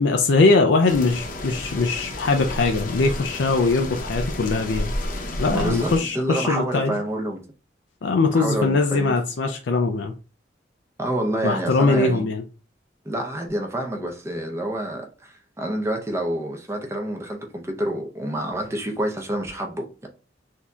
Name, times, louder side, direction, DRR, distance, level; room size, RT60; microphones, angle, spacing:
voice 1, 0.0-4.9 5.4-7.0 8.0-10.1 11.4-12.4, left 3 dB, 75° left, 0.4 m, -21 dB
sound 1, 0.9-6.0, left 1 dB, 45° left, 0.8 m, -31 dB
voice 2, 5.5-7.4 8.3-9.2 11.0-12.2 13.0-20.1, right 1 dB, 15° right, 0.7 m, -28 dB
6.0 x 2.7 x 2.3 m
head